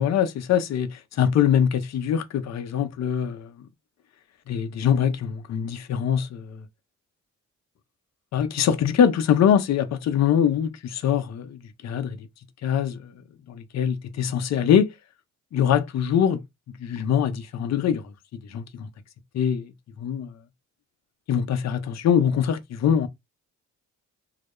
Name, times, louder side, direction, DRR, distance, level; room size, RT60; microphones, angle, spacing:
voice 1, 0.0-3.7 4.5-6.7 8.3-12.3 12.6-13.1 13.5-14.9 15.5-16.4 16.8-18.9 19.3-19.7 20.0-20.3 21.3-23.1, left 8 dB, 60° left, 0.5 m, -23 dB
2.2 x 2.0 x 2.9 m
cardioid pair, 80°, 31 cm